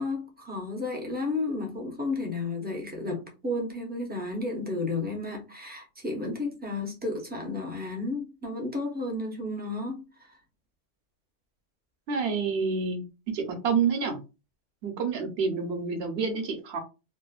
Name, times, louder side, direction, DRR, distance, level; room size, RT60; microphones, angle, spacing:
voice 1, 0.0-10.4, left 2 dB, 15° right, 0.4 m, -32 dB
voice 2, 12.1-13.0 13.3-14.2 14.8-16.8, right 5 dB, 65° right, 0.8 m, -28 dB
2.9 x 2.0 x 2.3 m
omnidirectional pair, 1.2 m